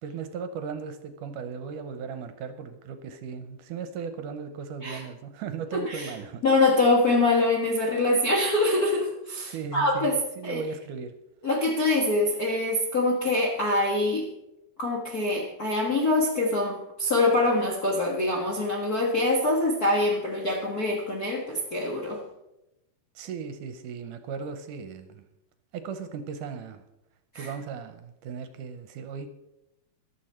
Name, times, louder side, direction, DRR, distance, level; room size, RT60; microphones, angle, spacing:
voice 1, 0.0-6.4 9.4-11.1 23.2-25.3 25.7-26.8 27.4-29.3, right 6 dB, 75° right, 9 dB, 2.2 m, -37 dB
voice 2, 6.4-10.2 10.4-10.6 11.4-14.3 14.8-22.2 27.3-27.5, left 2 dB, 50° left, -1 dB, 1.1 m, -24 dB
14.5 x 11.5 x 4.4 m, 0.88 s
omnidirectional pair, 4.0 m